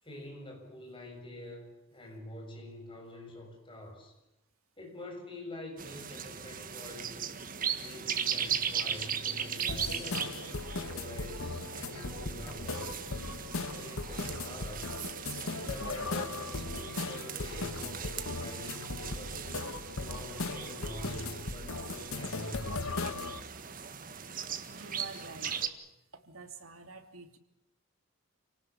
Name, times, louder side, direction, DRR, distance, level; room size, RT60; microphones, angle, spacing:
voice 1, 0.0-4.2 4.8-7.2 7.8-10.4 10.9-13.1 13.7-14.9 15.6-19.4 20.0-23.3, left 1 dB, 25° left, 2 dB, 7.1 m, -46 dB
sound 1, 5.8-25.7, right 8 dB, 40° right, 1.7 m, -38 dB
sound 2, 6.7-15.3 16.5-16.6, equal, 10° right, 7.4 m, -59 dB
sound 3, 9.7-23.4, left 3 dB, 90° left, 1.5 m, -38 dB
voice 2, 24.7-27.4, right 4 dB, 90° right, 6 dB, 2.9 m, -48 dB
28.0 x 19.0 x 7.1 m, 0.86 s
head